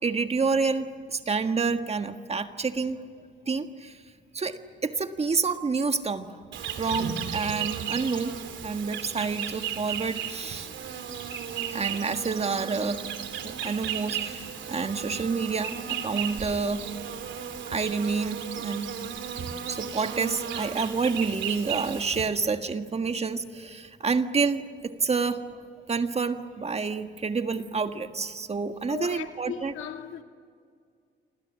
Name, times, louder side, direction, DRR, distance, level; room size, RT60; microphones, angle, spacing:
voice 1, 0.0-3.0 3.5-4.0 4.3-6.4 6.8-10.7 11.7-13.0 13.4-16.8 17.7-18.9 19.7-25.4 25.9-29.7, right 4 dB, 30° right, 1.6 m, -28 dB
Insect, 6.5-22.3, right 8 dB, 70° right, 2.9 m, -35 dB
voice 2, 28.9-30.2, left 9 dB, 75° left, 2.6 m, -37 dB
28.5 x 25.0 x 7.4 m
cardioid pair, 90°, 20 cm